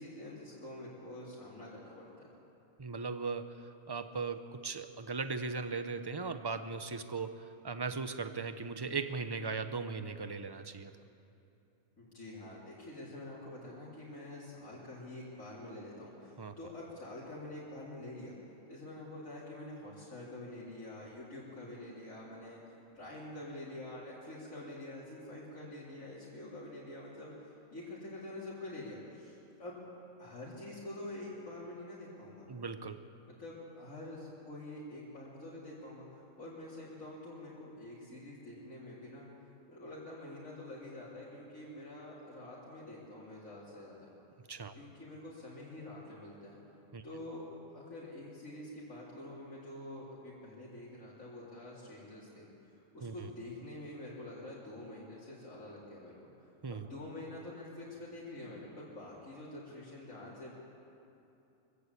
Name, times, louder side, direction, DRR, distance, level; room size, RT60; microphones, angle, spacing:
voice 1, 0.0-2.3 12.0-18.3 18.7-22.6 22.9-29.8 30.2-32.6 33.3-39.3 39.7-44.1 44.7-46.6 47.0-56.3 56.7-60.5, left 1 dB, 75° left, -8 dB, 4.1 m, -47 dB
voice 2, 2.8-10.9 16.4-16.5 32.5-33.0 44.5-44.7 46.9-47.0 53.0-53.3 56.6-56.9, right 4 dB, 25° right, 10 dB, 0.7 m, -38 dB
24.5 x 15.0 x 8.4 m, 2.8 s
omnidirectional pair, 1.4 m